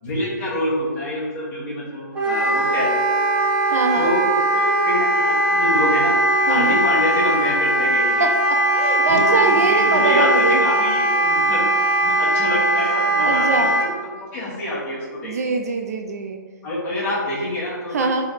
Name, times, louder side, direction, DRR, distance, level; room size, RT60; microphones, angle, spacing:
voice 1, 0.0-3.4 3.9-6.2 6.5-8.3 9.1-11.7 12.0-13.9 14.2-15.3 16.6-18.2, left 1 dB, 15° left, -9 dB, 1.3 m, -26 dB
Wind instrument woodwind instrument, 2.1-13.9, right 1 dB, 5° right, 1.0 m, -19 dB
voice 2, 3.7-4.1 6.5-6.8 8.2-10.6 13.2-13.8 15.2-16.4 17.9-18.2, right 4 dB, 50° right, 5 dB, 0.4 m, -23 dB
3.9 x 3.4 x 3.9 m, 1.5 s
hypercardioid pair, 170°, 11 cm